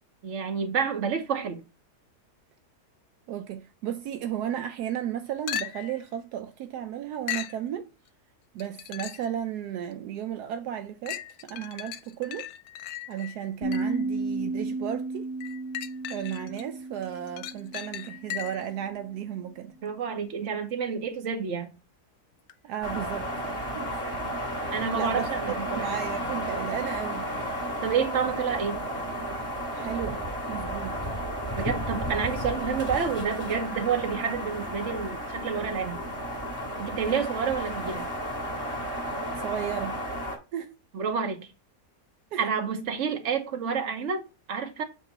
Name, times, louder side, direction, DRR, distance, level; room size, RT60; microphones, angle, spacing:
voice 1, 0.2-1.6 19.8-21.7 24.7-25.9 27.8-28.8 31.6-36.0 36.8-38.1 40.9-41.5 42.4-44.8, right 6 dB, 50° right, 1.3 m, -29 dB
voice 2, 3.3-7.9 8.5-12.5 13.1-15.3 16.1-19.7 22.6-24.3 24.9-27.3 29.6-31.1 39.4-40.0 40.5-40.8 42.3-42.4, right 10 dB, 80° right, 1.1 m, -34 dB
sound 1, 5.5-6.0 7.3-7.6 8.6-9.3 9.9-10.0 11.1-14.0 15.4-16.6 17.0-18.7 22.5-22.6, left 11 dB, 70° left, 1.0 m, -37 dB
sound 2, 13.6-18.8, right 3 dB, 50° left, 0.7 m, -34 dB
sound 3, 22.8-40.4, equal, 10° right, 2.5 m, -33 dB
8.3 x 3.0 x 4.0 m
omnidirectional pair, 1.7 m